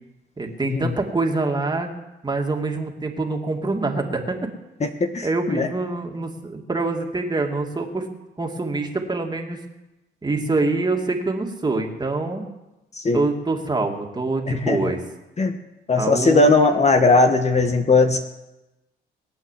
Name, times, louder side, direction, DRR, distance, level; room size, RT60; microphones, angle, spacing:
voice 1, 0.4-1.9 2.2-4.4 5.2-8.1 8.4-9.6 10.2-12.4 13.1-15.0 16.0-16.5, right 3 dB, 20° right, 2 dB, 2.6 m, -25 dB
voice 2, 4.8-5.7 13.0-13.2 14.5-14.9 15.4-15.6 15.9-18.2, left 3 dB, 35° left, 6 dB, 1.4 m, -19 dB
21.0 x 8.9 x 7.5 m, 1.0 s
cardioid pair, 90°, 20 cm